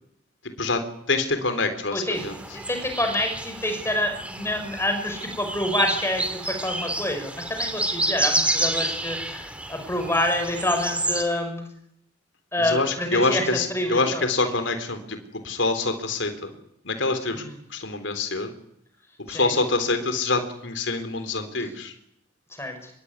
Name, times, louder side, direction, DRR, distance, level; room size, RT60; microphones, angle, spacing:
voice 1, 1.1-2.4 12.6-15.2 15.4-16.5 16.8-17.4 17.7-18.5 19.3-21.9, left 3 dB, 75° left, 8 dB, 3.9 m, -25 dB
voice 2, 1.9-2.3 2.5-11.6 12.5-14.2 17.3-17.5 19.3-19.5 22.6-22.9, left 1 dB, 15° left, 6 dB, 5.6 m, -27 dB
sound 1, 2.1-11.2, right 1 dB, 5° right, 2.6 m, -29 dB
26.0 x 23.0 x 9.7 m, 0.75 s
head